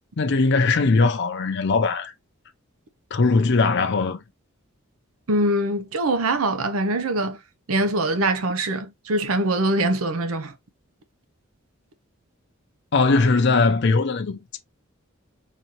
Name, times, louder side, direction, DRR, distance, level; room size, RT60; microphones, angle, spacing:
voice 1, 0.2-2.1 3.1-4.2 12.9-14.6, left 3 dB, 55° left, 0.5 m, -20 dB
voice 2, 5.3-7.4 7.7-10.5, right 1 dB, 85° right, 0.7 m, -23 dB
4.1 x 2.7 x 2.9 m
head